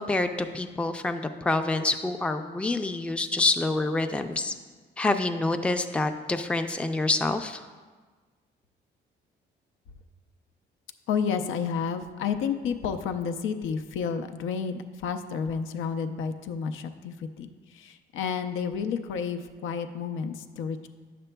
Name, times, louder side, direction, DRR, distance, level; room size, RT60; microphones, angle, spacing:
voice 1, 0.0-4.5 5.0-7.7, left 2 dB, 5° left, 7 dB, 0.4 m, -27 dB
voice 2, 11.1-20.9, left 6 dB, 85° left, 8 dB, 0.5 m, -31 dB
9.0 x 6.7 x 2.2 m, 1.4 s
cardioid pair, 90°, 20 cm